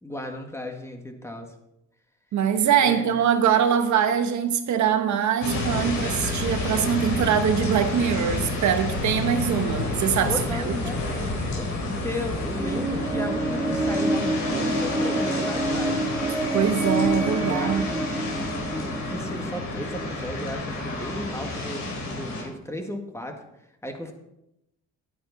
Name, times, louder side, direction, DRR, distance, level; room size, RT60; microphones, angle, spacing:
voice 1, 0.0-1.5 2.8-3.1 10.2-11.2 11.5-16.1 17.4-23.4 23.8-24.1, left 1 dB, 10° left, 4 dB, 1.9 m, -35 dB
voice 2, 2.3-10.8 16.5-18.1, right 8 dB, 70° right, 8 dB, 1.1 m, -23 dB
sound 1, 5.4-22.4, left 2 dB, 90° left, 3.9 m, -30 dB
sound 2, 12.6-20.7, right 2 dB, 20° right, 3.0 m, -28 dB
11.0 x 9.3 x 4.2 m, 0.84 s
cardioid pair, 90°, 30 cm